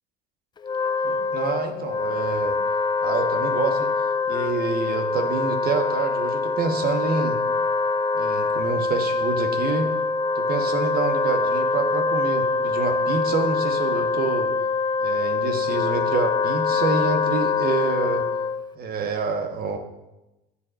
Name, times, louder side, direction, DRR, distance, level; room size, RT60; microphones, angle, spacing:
Wind instrument woodwind instrument, 0.6-18.7, left 4 dB, 20° left, 0.4 m, -24 dB
voice 1, 1.0-2.6 3.0-3.9 4.3-7.4 8.1-9.9 10.3-14.5 15.0-18.2 18.8-19.8, right 4 dB, 50° right, 5 dB, 1.4 m, -27 dB
13.0 x 7.1 x 2.6 m, 0.97 s
hypercardioid pair, 75°, 20 cm